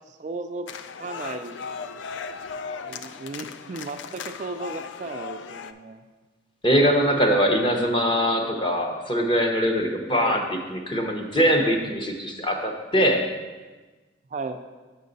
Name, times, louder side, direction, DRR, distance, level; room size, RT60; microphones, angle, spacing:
voice 1, 0.1-0.7 1.0-1.6 2.8-6.0 10.2-10.5 14.3-14.6, right 3 dB, 40° right, 6 dB, 0.3 m, -35 dB
sound 1, 0.7-5.7, left 5 dB, 80° left, 0.4 m, -37 dB
voice 2, 6.6-10.4 10.7-13.2, equal, 25° left, 2 dB, 0.8 m, -22 dB
6.7 x 6.4 x 4.0 m, 1.3 s
head